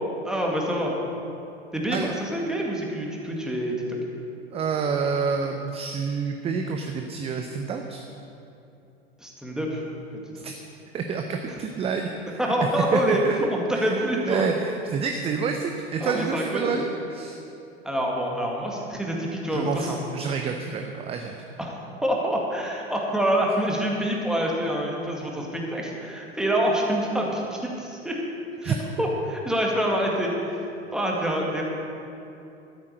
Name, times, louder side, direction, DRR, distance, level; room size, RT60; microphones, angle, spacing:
voice 1, 0.2-1.0 1.7-4.0 9.2-9.8 10.1-10.2 12.4-14.4 16.0-16.8 17.8-20.0 21.6-28.2 28.6-31.6, right 1 dB, ahead, -1 dB, 1.9 m, -26 dB
voice 2, 4.5-8.0 10.4-10.6 10.9-12.4 12.9-13.3 13.7-13.9 14.3-16.8 17.1-17.4 19.5-21.4 28.6-28.7, right 5 dB, 20° right, 4 dB, 0.6 m, -28 dB
12.0 x 8.8 x 6.6 m, 2.8 s
figure-of-eight pair, 85°, 33 cm